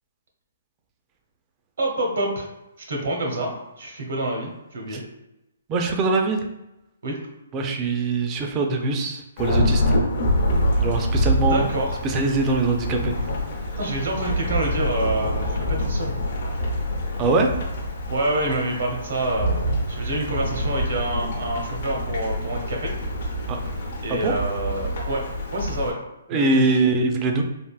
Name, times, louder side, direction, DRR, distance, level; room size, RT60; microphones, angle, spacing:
voice 1, 1.8-2.5 2.9-5.0 7.0-7.2 11.5-11.9 13.8-16.2 18.1-22.9 24.0-25.2 25.5-26.0 26.3-26.6, right 1 dB, 70° right, 0 dB, 0.9 m, -27 dB
voice 2, 5.7-6.4 7.5-9.9 10.8-11.7 12.0-13.1 17.2-17.5 23.5-23.6 24.1-24.4 26.3-27.4, right 3 dB, 25° right, 3 dB, 0.4 m, -22 dB
Thunderstorm / Rain, 9.4-25.9, equal, 60° left, 0.7 m, -26 dB
3.4 x 2.4 x 2.3 m, 0.91 s
hypercardioid pair, 150°, 0 cm